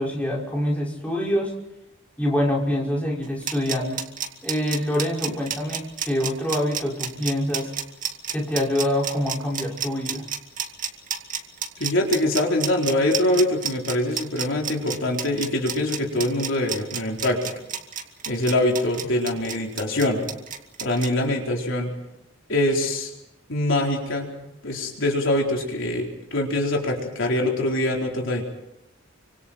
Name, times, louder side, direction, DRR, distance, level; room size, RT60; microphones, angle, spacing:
voice 1, 0.0-1.5 2.2-4.0 4.4-7.7 8.3-10.2, left 1 dB, 5° left, -3 dB, 5.6 m, -25 dB
sound 1, 3.2-21.1, right 7 dB, 40° right, 2.2 m, -30 dB
voice 2, 11.8-17.5 18.3-20.2 20.8-21.9 22.5-23.1 23.5-24.3 24.6-28.4, left 1 dB, 65° left, 0 dB, 4.3 m, -24 dB
30.0 x 25.5 x 4.5 m, 0.88 s
head